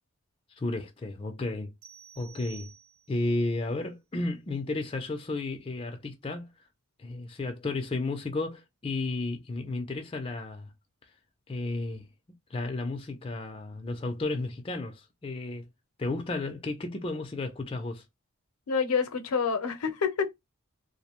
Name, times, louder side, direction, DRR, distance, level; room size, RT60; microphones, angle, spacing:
voice 1, 0.5-1.7 2.2-2.7 3.1-6.5 7.0-10.7 11.5-12.0 12.5-15.7 16.0-18.0, left 2 dB, 25° left, 0.4 m, -33 dB
sound 1, 1.8-3.3, right 7 dB, 80° right, 0.7 m, -51 dB
voice 2, 18.7-20.3, left 5 dB, 85° left, 0.6 m, -27 dB
2.5 x 2.0 x 2.8 m
head